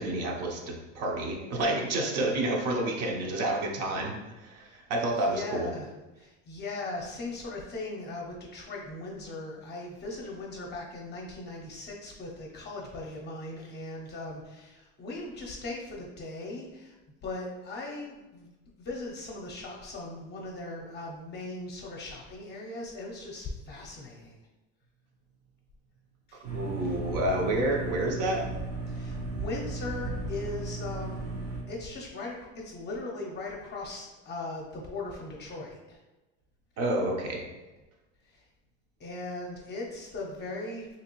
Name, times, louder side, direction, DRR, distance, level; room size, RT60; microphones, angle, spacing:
voice 1, 0.0-5.7 26.5-28.5 36.8-37.4, right 1 dB, 55° right, 1 dB, 0.7 m, -29 dB
voice 2, 5.1-5.9 6.2-17.0 17.2-18.5 18.8-24.4 26.3-26.4 26.8-27.0 28.9-31.4 31.7-36.0 38.2-38.4 39.0-40.9, left 2 dB, 35° left, -2 dB, 0.6 m, -39 dB
sound 1, 26.4-31.6, right 2 dB, 80° right, 1.2 m, -35 dB
3.2 x 2.9 x 3.0 m, 1.1 s
cardioid pair, 120°, 30 cm